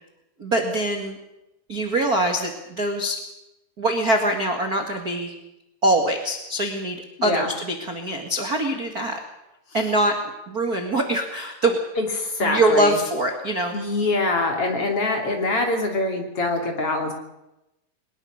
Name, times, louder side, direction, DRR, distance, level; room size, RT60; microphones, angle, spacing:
voice 1, 0.4-1.2 1.7-3.2 3.8-5.3 5.8-9.2 9.7-10.1 10.5-11.8 12.4-13.7, right 1 dB, 35° right, 4 dB, 1.4 m, -23 dB
voice 2, 7.2-7.5 12.0-13.0 13.7-17.1, left 2 dB, 35° left, 2 dB, 3.4 m, -24 dB
22.5 x 20.0 x 6.6 m, 0.91 s
omnidirectional pair, 4.7 m